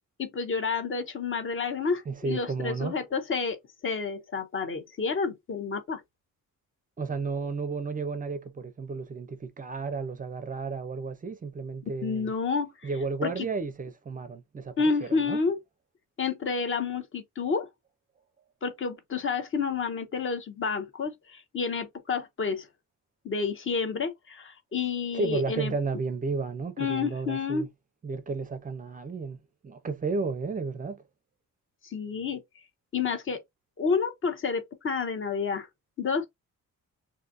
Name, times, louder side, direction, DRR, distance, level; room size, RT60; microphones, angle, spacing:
voice 1, 0.2-6.0 12.0-12.9 13.2-13.5 14.8-15.6 16.2-17.7 18.6-22.7 23.2-25.7 26.8-27.7 31.8-32.4 32.9-33.4 33.8-35.7 36.0-36.3, left 5 dB, 35° left, 0.7 m, -30 dB
voice 2, 2.1-3.0 7.0-12.3 12.8-15.4 25.1-27.7 28.0-29.4 29.6-31.0, right 4 dB, 25° right, 0.4 m, -33 dB
3.9 x 2.6 x 2.5 m
wide cardioid pair, 170°, 34 cm